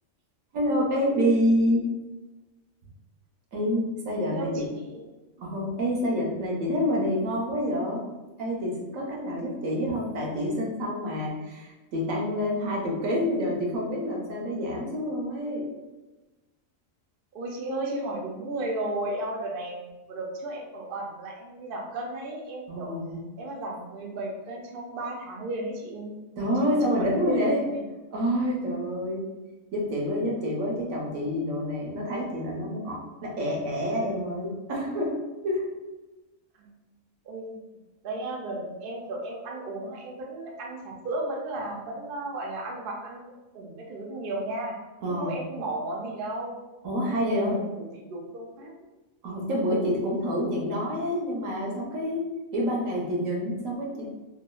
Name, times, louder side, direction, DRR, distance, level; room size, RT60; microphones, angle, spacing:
voice 1, 0.5-1.8 3.5-4.6 5.4-8.0 8.4-15.7 22.7-23.2 26.4-27.6 28.1-29.3 29.7-35.1 35.4-35.7 45.0-45.4 46.8-47.6 49.2-52.2 52.5-54.1, equal, 80° right, -2 dB, 1.1 m, -27 dB
voice 2, 4.3-5.0 17.3-22.9 23.4-26.1 26.7-27.8 36.6-36.7 37.2-37.5 38.0-44.7 45.1-46.6 47.0-48.7, right 2 dB, 60° right, -1 dB, 0.6 m, -34 dB
3.0 x 2.3 x 2.3 m, 1.1 s
omnidirectional pair, 1.4 m